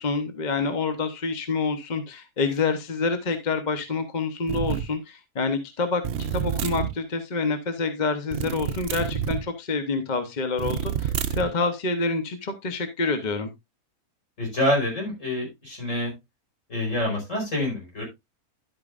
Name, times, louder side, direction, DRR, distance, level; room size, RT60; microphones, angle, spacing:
voice 1, 0.0-13.5, left 4 dB, 35° left, 8 dB, 0.9 m, -27 dB
sound 1, 4.5-4.9 6.0-6.9 8.3-9.4 10.6-11.5, right 9 dB, 55° right, 0.8 m, -28 dB
voice 2, 14.4-16.1 16.7-18.0, left 1 dB, 55° left, 0 dB, 5.3 m, -26 dB
11.0 x 8.5 x 2.5 m, 0.20 s
omnidirectional pair, 1.6 m